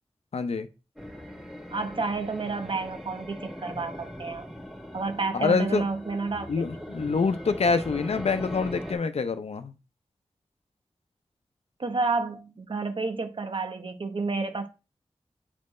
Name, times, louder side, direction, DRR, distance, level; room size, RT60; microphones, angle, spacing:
voice 1, 0.3-0.7 5.3-5.9 6.5-9.7, left 4 dB, 75° left, 0.6 m, -26 dB
sound 1, 1.0-8.9, equal, ahead, 1.6 m, -40 dB
voice 2, 1.7-4.5 4.9-6.6 11.8-14.7, right 3 dB, 55° right, 1.0 m, -30 dB
8.1 x 4.3 x 3.2 m
wide cardioid pair, 65°, 11 cm